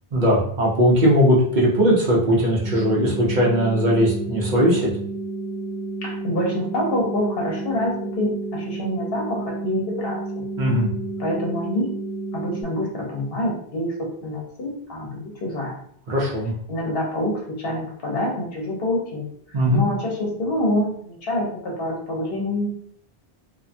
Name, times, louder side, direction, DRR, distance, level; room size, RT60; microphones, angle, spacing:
voice 1, 0.1-4.9 10.6-10.9 16.1-16.5 19.5-19.8, equal, 50° right, -4 dB, 0.8 m, -19 dB
sound 1, 2.6-12.6, right 3 dB, 10° right, 0.5 m, -31 dB
voice 2, 6.0-10.5 11.2-11.9 12.3-15.7 16.7-19.3 19.7-22.7, left 1 dB, 70° left, -2 dB, 1.1 m, -26 dB
2.6 x 2.3 x 2.5 m, 0.63 s
omnidirectional pair, 1.0 m